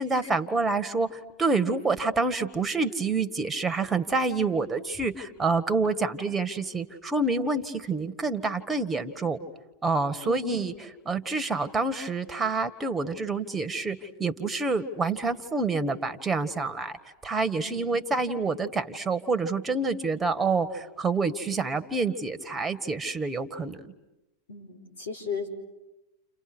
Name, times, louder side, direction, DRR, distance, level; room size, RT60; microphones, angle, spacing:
voice 1, 0.0-9.4 9.8-10.7 11.1-17.0 17.2-23.8, right 3 dB, 15° right, 11 dB, 1.9 m, -27 dB
voice 2, 10.2-10.6 17.7-17.8 24.5-25.5, left 5 dB, 80° left, 7 dB, 5.0 m, -35 dB
30.0 x 29.5 x 6.4 m, 0.98 s
hypercardioid pair, 100°, 0 cm